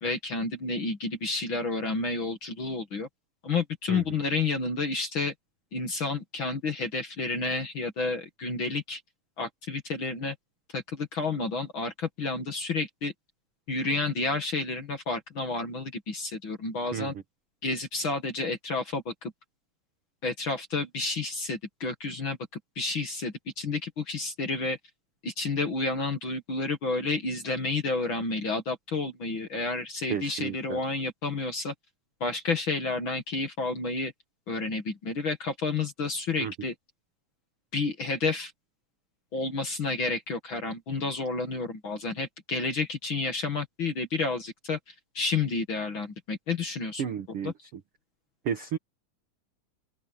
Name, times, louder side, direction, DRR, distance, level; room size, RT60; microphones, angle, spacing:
voice 1, 0.0-3.1 3.4-5.3 5.7-9.0 9.4-10.4 10.7-13.1 13.7-17.1 17.6-19.3 20.2-22.4 22.8-24.8 25.2-31.7 32.2-34.1 34.5-36.7 37.7-38.5 39.3-47.1 47.4-47.5, left 3 dB, 40° left, 2.0 m, -30 dB
voice 2, 30.1-30.8 36.4-36.5 47.0-47.5 48.4-48.8, right 8 dB, 70° right, 1.3 m, -32 dB
omnidirectional pair, 4.3 m